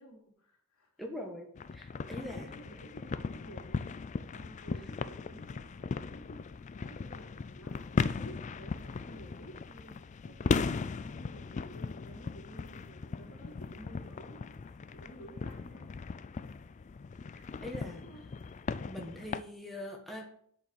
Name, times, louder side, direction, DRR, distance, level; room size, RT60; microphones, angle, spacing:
voice 1, 0.0-0.9 1.8-7.8 8.1-16.5 18.0-18.2, right 1 dB, 75° left, -2 dB, 3.4 m, -53 dB
voice 2, 1.0-1.5 1.7-2.5 17.6-18.0 18.9-20.3, left 1 dB, ahead, -1 dB, 1.4 m, -42 dB
sound 1, 1.6-19.4, left 4 dB, 35° left, 0.3 m, -38 dB
8.1 x 4.9 x 7.4 m, 0.64 s
head